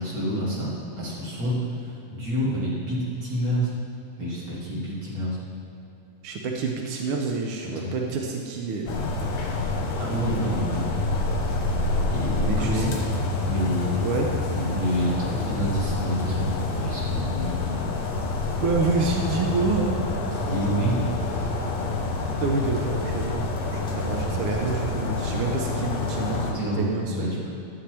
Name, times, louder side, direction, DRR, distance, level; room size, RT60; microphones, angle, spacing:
voice 1, 0.0-3.7 4.2-5.4 7.7-8.0 10.0-10.8 12.1-12.9 13.4-14.0 14.5-17.7 20.3-21.1 26.2-27.5, equal, 35° right, -8 dB, 2.7 m, -28 dB
voice 2, 6.2-9.1 12.4-13.2 14.0-14.3 18.6-20.1 22.4-23.4 23.7-27.4, right 4 dB, 80° right, 1 dB, 1.2 m, -28 dB
sound 1, 8.9-26.5, left 3 dB, 75° left, 2.5 m, -27 dB
11.5 x 9.3 x 3.4 m, 2.8 s
omnidirectional pair, 3.5 m